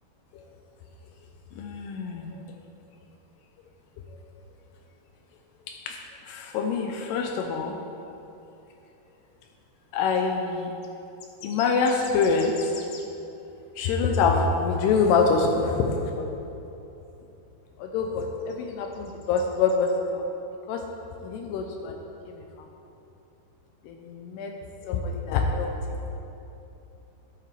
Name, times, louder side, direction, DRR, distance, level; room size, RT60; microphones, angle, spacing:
voice 1, 1.6-2.4 5.7-6.0 6.3-7.8 9.9-10.7 11.4-13.0 13.8-16.4 17.8-20.2 20.7-20.8 21.2-22.0 22.3-22.4 23.8-24.5 24.8-25.7, left 4 dB, 85° left, 2 dB, 2.7 m, -25 dB
13.0 x 11.5 x 3.3 m, 2.9 s
omnidirectional pair, 4.7 m